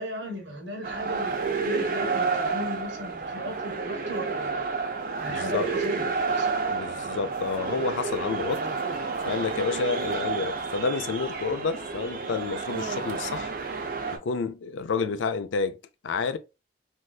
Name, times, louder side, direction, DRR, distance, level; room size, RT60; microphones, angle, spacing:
voice 1, 0.0-4.6 5.2-6.6, equal, 80° right, 1.1 m, -37 dB
sound 1, 0.8-14.2, right 4 dB, 45° right, 0.5 m, -30 dB
voice 2, 5.3-5.7 6.7-8.7 9.3-13.5 14.1-16.4, left 4 dB, 80° left, 0.4 m, -29 dB
3.3 x 2.7 x 2.3 m
head